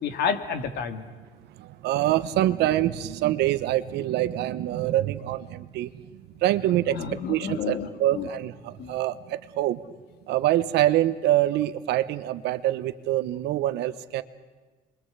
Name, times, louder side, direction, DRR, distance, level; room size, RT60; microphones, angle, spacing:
voice 1, 0.0-1.1 6.9-8.3 8.8-9.0, left 6 dB, 75° left, 8 dB, 2.2 m, -30 dB
voice 2, 1.5-5.9 6.4-7.0 7.3-9.8 10.3-14.2, right 14 dB, 80° right, 13 dB, 1.1 m, -25 dB
28.0 x 23.0 x 8.2 m, 1.3 s
cardioid pair, 110°, 17 cm